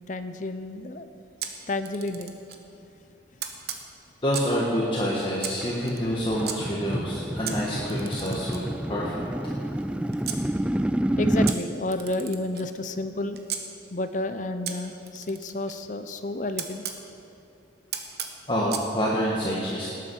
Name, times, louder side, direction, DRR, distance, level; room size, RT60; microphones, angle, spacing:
voice 1, 0.1-1.1 1.7-2.4 11.2-13.4 13.9-16.8, left 2 dB, 45° left, 9 dB, 0.6 m, -31 dB
Camera, 1.4-2.7 3.4-4.6 5.4-6.6 7.5-10.4 11.5-13.6 14.7-17.0 17.9-18.9, right 8 dB, 60° right, 1.2 m, -37 dB
voice 2, 4.2-9.1 18.5-19.9, equal, 25° left, -5 dB, 1.6 m, -27 dB
sound 1, 5.6-11.6, right 1 dB, 5° right, 0.3 m, -28 dB
19.0 x 8.5 x 6.3 m, 2.9 s
head